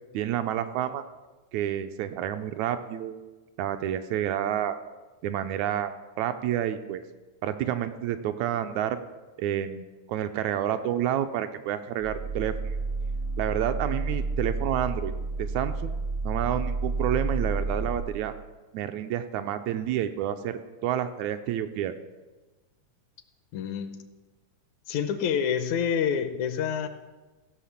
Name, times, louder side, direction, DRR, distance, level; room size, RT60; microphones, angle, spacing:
voice 1, 0.1-1.0 1.5-3.2 3.6-4.8 5.2-5.9 6.2-7.0 7.4-9.0 9.4-12.8 13.4-15.1 15.4-15.9 16.2-18.3 18.7-21.9, right 10 dB, 80° right, 9 dB, 1.8 m, -29 dB
sound 1, 12.0-18.0, right 3 dB, 55° right, 0.7 m, -30 dB
voice 2, 23.5-24.0 24.9-26.9, left 7 dB, 75° left, 9 dB, 2.0 m, -27 dB
16.0 x 5.7 x 7.1 m, 1.2 s
omnidirectional pair, 3.5 m